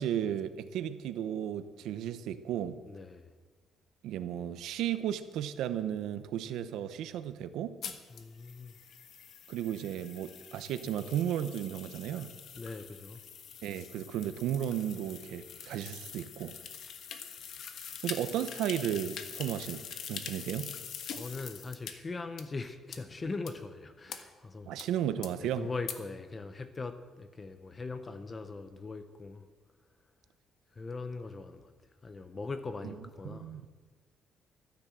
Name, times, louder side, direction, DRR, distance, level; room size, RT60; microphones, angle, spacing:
voice 1, 0.0-2.8 4.0-7.8 9.5-12.3 13.6-16.6 18.0-20.7 24.7-25.7 33.2-33.6, right 10 dB, 90° right, 12 dB, 0.7 m, -34 dB
voice 2, 2.9-3.3 8.1-8.8 12.5-13.2 18.3-18.4 21.0-24.7 25.4-29.4 30.7-31.7 32.0-33.6, left 3 dB, 20° left, 10 dB, 0.7 m, -41 dB
sound 1, 7.8-21.9 22.4-22.5 22.9-23.0 23.5-23.6 24.1-24.2 24.8-24.9 25.2-25.3 25.9-26.0, left 7 dB, 55° left, 1.3 m, -44 dB
13.5 x 10.0 x 7.6 m, 1.4 s
cardioid pair, 170°, 0 cm